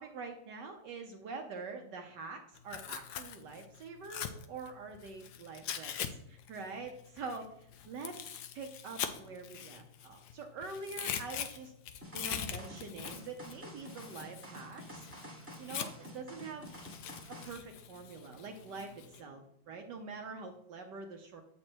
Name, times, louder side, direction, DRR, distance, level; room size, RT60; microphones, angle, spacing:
voice 1, 0.0-11.8 12.1-15.1 15.6-16.7 17.3-21.4, right 4 dB, 70° right, 4 dB, 1.1 m, -45 dB
Tearing, 2.6-6.1 6.4-10.3 10.6-16.2 16.6-19.2, left 9 dB, 80° left, 0.9 m, -42 dB
sound 1, 12.0-17.6, equal, 10° right, 0.7 m, -49 dB
7.6 x 4.2 x 4.4 m, 0.76 s
omnidirectional pair, 2.4 m